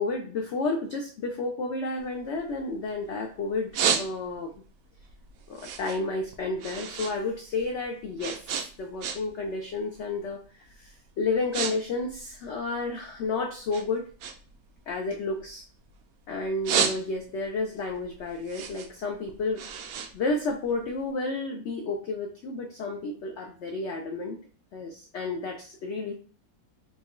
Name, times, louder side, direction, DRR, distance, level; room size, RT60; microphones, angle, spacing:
voice 1, 0.0-4.5 5.5-14.1 14.9-15.6 16.3-19.6 20.1-24.4 24.7-26.1, left 3 dB, 65° left, 2 dB, 0.7 m, -31 dB
sound 1, 2.0-3.1 3.5-4.5 5.0-7.2 7.4-9.5 9.8-10.1 10.7-10.9 11.2-11.7 12.0-13.2 13.7-16.0 16.4-17.5 17.9-21.0, right 7 dB, 70° right, 0.9 m, -31 dB
4.3 x 2.3 x 3.0 m, 0.42 s
omnidirectional pair, 1.7 m